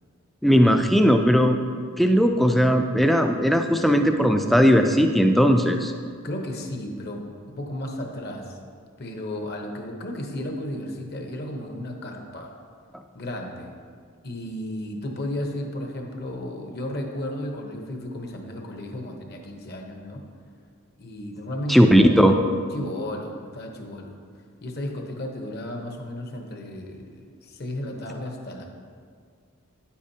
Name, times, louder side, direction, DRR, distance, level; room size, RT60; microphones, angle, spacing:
voice 1, 0.4-1.6 2.0-5.9 21.7-22.3, equal, ahead, 5 dB, 0.3 m, -18 dB
voice 2, 6.2-8.6 9.0-12.5 13.1-13.7 14.2-20.2 21.0-22.2 22.7-24.2 24.6-28.7, left 1 dB, 45° left, 2 dB, 0.9 m, -34 dB
9.6 x 8.4 x 2.8 m, 2.1 s
head